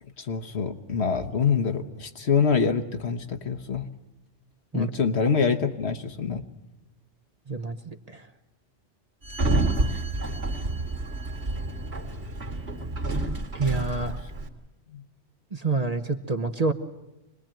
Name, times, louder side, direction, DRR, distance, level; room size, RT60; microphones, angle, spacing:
voice 1, 0.2-3.9 4.7-6.4 14.9-15.0, left 6 dB, 60° left, 7 dB, 1.5 m, -25 dB
voice 2, 7.5-8.3 13.5-14.2 15.5-16.7, right 3 dB, 35° right, 5 dB, 1.0 m, -28 dB
Sliding door, 9.2-14.5, right 2 dB, 55° right, 2.5 m, -28 dB
26.0 x 20.5 x 9.0 m, 1.0 s
omnidirectional pair, 1.2 m